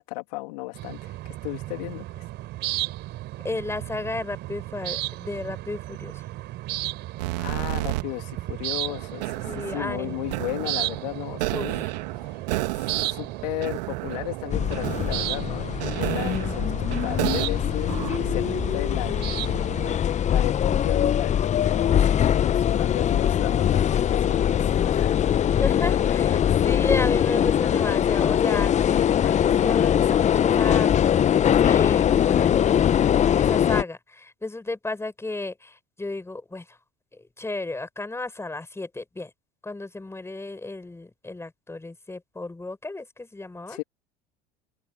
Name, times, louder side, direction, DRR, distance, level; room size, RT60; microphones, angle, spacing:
voice 1, 0.0-2.2 7.4-11.9 12.1-12.5 13.0-25.3 26.3-26.6 43.7-43.8, left 24 dB, 75° left, 2.6 m, -35 dB
sound 1, 0.7-20.0, right 16 dB, 55° right, 4.0 m, -34 dB
voice 2, 3.4-6.2 9.4-10.4 11.5-11.9 16.3-16.8 25.4-26.4 26.6-31.1 31.4-32.8 33.4-36.8 37.1-39.3 39.6-43.8, left 2 dB, 10° left, 7.4 m, -33 dB
sound 2, 7.2-8.0 8.9-17.5 17.9-18.9, right 19 dB, 75° right, 1.9 m, -32 dB
sound 3, 14.5-33.8, left 9 dB, 35° left, 0.9 m, -22 dB
hypercardioid pair, 80°, 21 cm